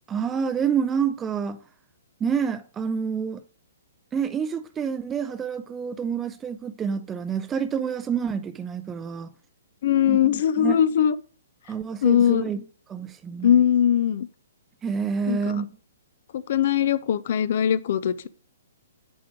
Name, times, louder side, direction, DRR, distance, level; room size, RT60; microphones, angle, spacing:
voice 1, 0.1-1.6 2.2-3.4 4.1-9.3 10.1-10.8 11.7-12.6 12.9-13.5 14.8-15.7, right 7 dB, 15° right, 0.4 m, -28 dB
voice 2, 9.8-11.2 12.0-12.5 13.4-14.3 15.3-15.6 16.3-18.3, left 9 dB, 55° left, 0.5 m, -21 dB
9.5 x 3.7 x 4.7 m
hypercardioid pair, 130°, 0 cm